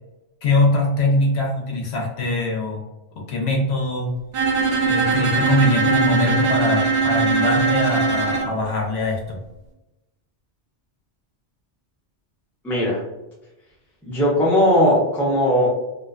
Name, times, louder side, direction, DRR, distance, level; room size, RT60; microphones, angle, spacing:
voice 1, 0.4-2.8 3.2-4.1 4.9-9.4, left 2 dB, 65° left, 0 dB, 0.8 m, -22 dB
Bowed string instrument, 4.3-8.5, right 4 dB, 65° right, 0.7 m, -20 dB
voice 2, 12.6-13.0 14.1-15.7, equal, 5° left, -5 dB, 0.4 m, -18 dB
2.5 x 2.2 x 2.3 m, 0.98 s
omnidirectional pair, 1.2 m